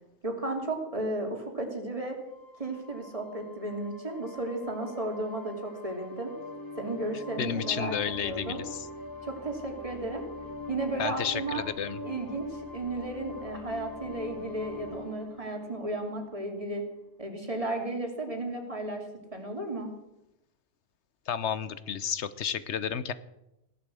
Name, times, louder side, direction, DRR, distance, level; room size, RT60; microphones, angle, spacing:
voice 1, 0.2-2.2 2.6-6.3 6.7-8.0 8.2-8.6 9.2-10.2 10.7-11.6 12.0-16.8 17.2-19.0 19.3-19.9, right 2 dB, 30° right, 2 dB, 3.0 m, -34 dB
sound 1, 2.3-16.7, left 2 dB, 20° left, 2.0 m, -43 dB
voice 2, 7.4-8.9 11.0-12.0 21.3-23.1, left 8 dB, 85° left, 15 dB, 1.2 m, -32 dB
16.5 x 11.5 x 7.7 m, 0.89 s
omnidirectional pair, 1.1 m